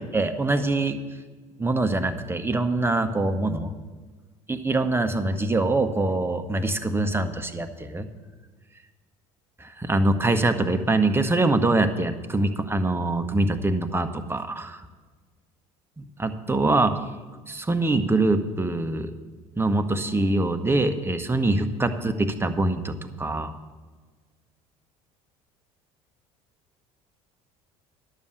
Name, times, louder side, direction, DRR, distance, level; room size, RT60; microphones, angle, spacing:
voice 1, 0.1-1.0 1.6-3.7 4.5-8.1 9.6-14.8 16.0-16.9 17.5-19.1 19.6-23.5, right 2 dB, 15° right, 8 dB, 1.0 m, -24 dB
11.5 x 7.1 x 6.6 m, 1.4 s
hypercardioid pair, 65°, 18 cm